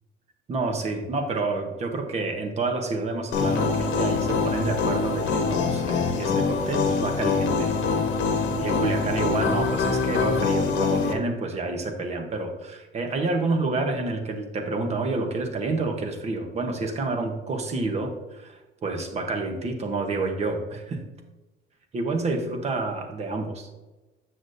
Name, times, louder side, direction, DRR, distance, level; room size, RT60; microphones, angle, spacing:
voice 1, 0.5-7.8 8.6-21.1 21.9-23.7, right 3 dB, 35° right, 4 dB, 0.9 m, -29 dB
sound 1, 3.3-11.1, left 5 dB, 75° left, 1.0 m, -24 dB
8.0 x 6.1 x 2.6 m, 1.1 s
cardioid pair, 150°, 19 cm